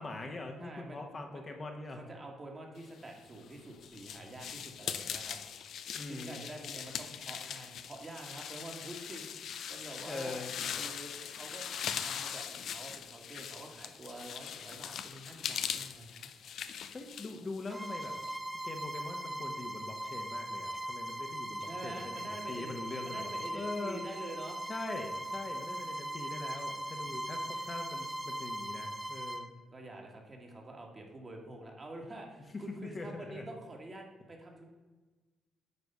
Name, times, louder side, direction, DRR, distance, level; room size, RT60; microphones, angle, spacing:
voice 1, 0.0-2.0 5.9-6.4 10.0-10.5 16.9-18.1 18.6-24.0 24.7-29.5 32.8-33.5, left 2 dB, 35° left, 3 dB, 1.1 m, -42 dB
voice 2, 0.6-1.0 1.3-1.4 1.9-5.4 6.1-11.7 12.0-16.3 21.6-24.6 29.7-34.6, right 1 dB, 30° right, 1 dB, 1.7 m, -47 dB
sound 1, 3.2-18.4, left 8 dB, 70° left, 0.5 m, -41 dB
Bowed string instrument, 17.7-29.5, right 1 dB, 15° right, 0.6 m, -39 dB
9.5 x 3.3 x 5.4 m, 1.3 s
cardioid pair, 90°, 0 cm